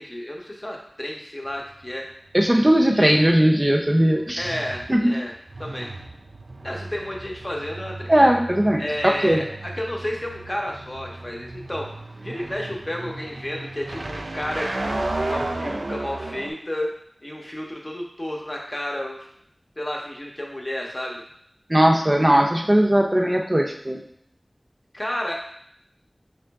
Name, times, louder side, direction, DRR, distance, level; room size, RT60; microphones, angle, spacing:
voice 1, 0.0-2.1 2.9-3.2 4.4-5.3 5.6-5.9 6.6-8.1 8.8-11.9 12.2-16.9 17.2-19.2 19.8-21.2 24.9-25.3, left 1 dB, 35° left, -1 dB, 0.8 m, -31 dB
sound 1, 1.5-16.5, right 2 dB, 90° right, 0.3 m, -34 dB
voice 2, 2.3-4.5 4.9-5.1 8.1-8.8 9.2-9.4 21.7-24.0, right 1 dB, 30° right, 0 dB, 0.5 m, -18 dB
3.7 x 3.0 x 3.4 m, 0.67 s
wide cardioid pair, 50°, 0 cm